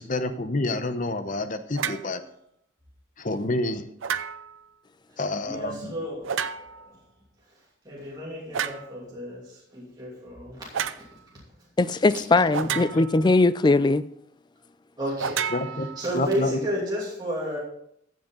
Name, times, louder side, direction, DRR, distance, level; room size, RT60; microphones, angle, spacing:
voice 1, 0.0-2.2 3.2-3.9 5.2-5.9 15.5-15.9 16.1-16.6, left 2 dB, 40° left, 0.8 m, -28 dB
Single clangs, 1.8-2.1 4.0-4.6 6.2-6.9 8.5-8.9 10.7-11.0 12.5-13.3 15.2-16.3, right 7 dB, 80° right, 0.5 m, -31 dB
voice 2, 5.1-7.0 7.8-11.0 11.6-11.7 12.1-12.2 12.6-12.8 15.0-15.4 15.8-17.6, equal, 20° right, 2.7 m, -33 dB
voice 3, 11.8-14.0, left 3 dB, 20° left, 0.3 m, -20 dB
14.0 x 7.7 x 3.9 m
head